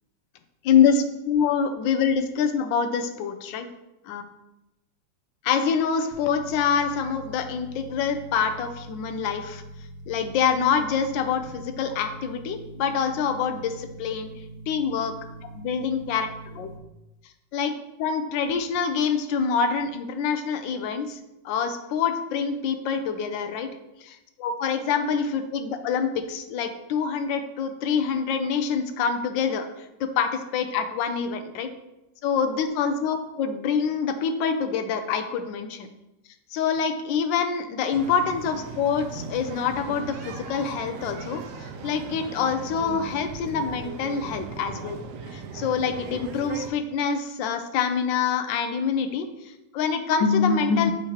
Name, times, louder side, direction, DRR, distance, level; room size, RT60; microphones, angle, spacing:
voice 1, 0.6-3.7 4.1-4.2 5.4-9.6 10.1-14.3 14.7-15.2 15.5-16.7 17.5-17.7 18.0-21.2 21.4-23.7 24.0-29.7 30.0-31.7 32.2-35.9 36.5-45.0 45.3-50.9, left 6 dB, 85° left, 8 dB, 1.3 m, -25 dB
sound 1, 6.1-16.8, right 1 dB, 40° right, 0.7 m, -43 dB
sound 2, 37.9-46.7, right 4 dB, 70° right, 0.7 m, -38 dB
6.6 x 5.2 x 2.8 m, 0.95 s
omnidirectional pair, 2.0 m